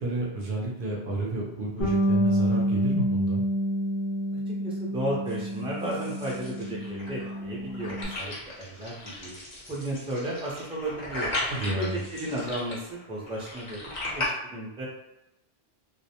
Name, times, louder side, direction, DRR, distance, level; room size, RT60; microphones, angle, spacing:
voice 1, 0.0-3.4 11.5-12.0, right 2 dB, 60° right, -2 dB, 0.7 m, -31 dB
Bass guitar, 1.8-8.1, equal, 80° left, 1.0 m, -28 dB
voice 2, 4.6-9.3 9.7-11.3 11.6-13.8 14.1-14.9, right 1 dB, 5° right, -5 dB, 0.4 m, -34 dB
sound 1, 5.3-14.3, left 2 dB, 45° left, 0.8 m, -37 dB
2.4 x 2.0 x 2.8 m, 0.90 s
omnidirectional pair, 1.1 m